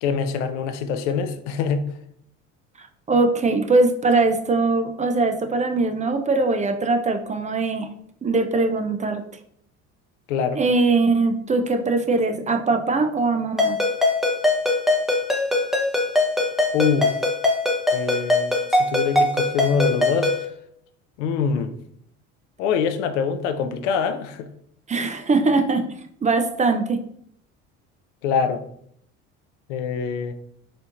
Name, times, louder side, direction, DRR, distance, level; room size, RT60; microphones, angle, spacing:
voice 1, 0.0-1.9 10.3-10.6 16.7-17.2 17.9-20.3 21.2-21.7 22.6-24.5 28.2-28.6 29.7-30.3, left 6 dB, 80° left, 9 dB, 0.5 m, -24 dB
voice 2, 2.8-7.9 8.2-9.2 10.6-13.8 24.9-25.8 26.2-27.0, right 3 dB, 20° right, 7 dB, 0.4 m, -21 dB
Ringtone, 13.6-20.4, left 2 dB, ahead, 0.9 m, -22 dB
4.3 x 2.7 x 2.5 m, 0.68 s
hypercardioid pair, 70°, 35 cm